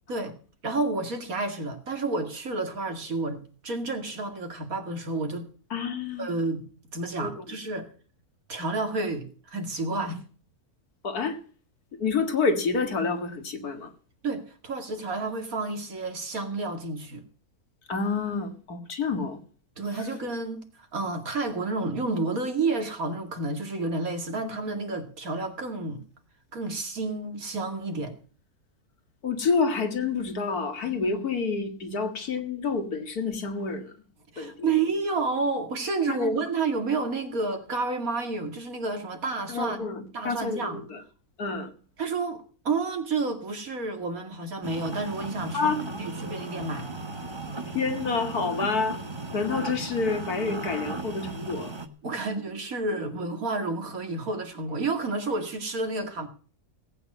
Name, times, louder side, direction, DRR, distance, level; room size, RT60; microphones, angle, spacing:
voice 1, 0.6-5.5 6.2-6.6 6.9-7.9 8.5-10.2 14.2-17.2 19.8-26.0 26.5-28.1 34.3-39.8 40.1-40.8 42.0-46.9 52.0-56.3, right 3 dB, 65° right, 2.8 m, -30 dB
voice 2, 5.7-6.3 7.2-7.4 11.0-11.4 12.0-13.9 17.9-19.4 29.2-33.9 34.4-34.7 36.1-36.3 39.5-41.0 41.4-41.7 45.5-45.8 47.7-49.0 49.3-51.7, left 4 dB, 80° left, 2.4 m, -28 dB
sound 1, 44.6-51.9, right 2 dB, 20° right, 1.2 m, -36 dB
17.5 x 9.3 x 5.5 m
omnidirectional pair, 1.6 m